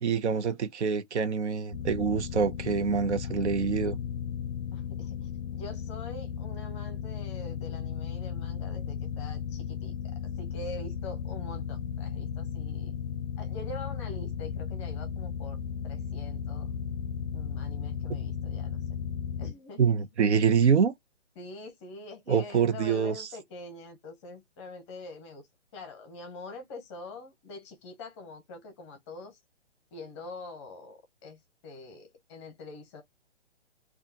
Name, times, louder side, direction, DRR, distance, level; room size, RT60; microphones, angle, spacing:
voice 1, 0.0-4.0 19.8-20.9 22.3-23.3, right 6 dB, 70° right, 0.8 m, -25 dB
sound 1, 1.7-19.5, left 8 dB, 65° left, 0.5 m, -35 dB
voice 2, 4.7-13.0 13.4-15.6 15.8-16.8 17.3-18.8 19.4-19.9 21.4-25.5 25.7-29.4 29.9-33.0, left 2 dB, 25° left, 0.8 m, -45 dB
3.5 x 2.4 x 2.7 m
hypercardioid pair, 140°, 35 cm